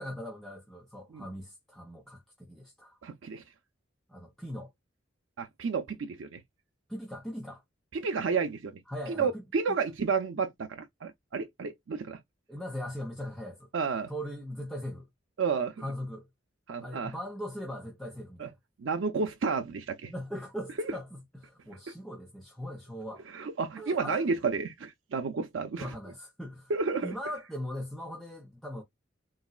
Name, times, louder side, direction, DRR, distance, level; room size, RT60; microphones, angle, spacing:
voice 1, 0.0-3.0 4.1-4.7 6.9-7.6 8.9-9.4 12.5-13.7 14.1-15.1 15.8-16.3 16.8-18.6 20.1-23.2 23.8-24.3 25.8-26.7 27.0-28.8, equal, ahead, 0.7 m, -40 dB
voice 2, 3.0-3.4 5.4-6.4 7.9-8.7 9.2-12.2 13.7-14.1 15.4-15.9 16.7-17.1 18.4-18.5 18.8-20.1 23.3-25.9 26.7-27.1, right 5 dB, 90° right, 0.5 m, -31 dB
4.0 x 2.2 x 2.4 m
head